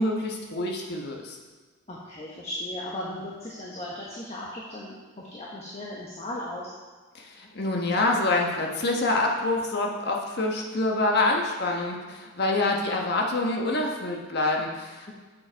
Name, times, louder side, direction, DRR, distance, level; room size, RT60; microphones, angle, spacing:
voice 1, 0.0-1.4 7.1-15.1, left 2 dB, 50° left, 0 dB, 1.2 m, -26 dB
voice 2, 1.9-6.7, left 1 dB, 30° left, -5 dB, 1.1 m, -36 dB
7.5 x 7.4 x 4.5 m, 1.4 s
head